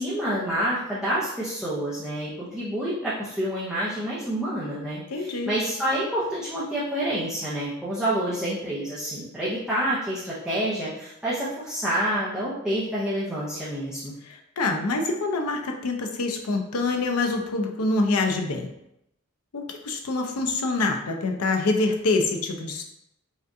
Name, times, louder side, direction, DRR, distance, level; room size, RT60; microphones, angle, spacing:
voice 1, 0.0-14.1, right 1 dB, 5° right, -10 dB, 0.7 m, -28 dB
voice 2, 5.1-5.5 14.2-18.7 19.5-22.8, left 3 dB, 85° left, 3 dB, 0.6 m, -26 dB
5.0 x 2.4 x 2.6 m, 0.83 s
head